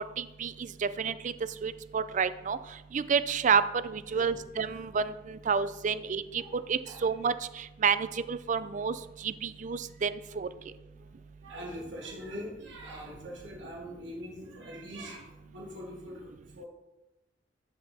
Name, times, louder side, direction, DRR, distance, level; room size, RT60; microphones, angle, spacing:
voice 1, 0.2-1.3 1.6-2.6 2.9-6.4 6.7-10.5, right 6 dB, 40° right, 14 dB, 0.4 m, -30 dB
voice 2, 11.4-16.7, equal, 70° right, -3 dB, 2.4 m, -43 dB
11.0 x 5.9 x 3.5 m, 1.0 s
head